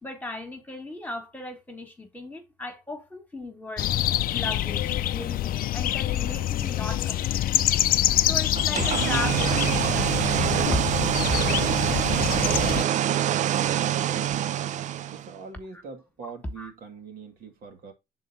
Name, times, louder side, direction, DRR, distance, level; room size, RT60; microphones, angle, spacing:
voice 1, 0.0-4.0 4.3-7.5 8.3-10.9 16.2-16.3 16.6-16.7, left 2 dB, 10° left, 1.7 m, -37 dB
sound 1, 3.8-12.8, left 13 dB, 60° left, 0.5 m, -26 dB
sound 2, 8.6-15.3, right 11 dB, 45° right, 0.4 m, -25 dB
voice 2, 13.8-14.6 15.0-17.9, right 5 dB, 60° right, 1.7 m, -44 dB
6.4 x 4.0 x 4.0 m
cardioid pair, 110°, 17 cm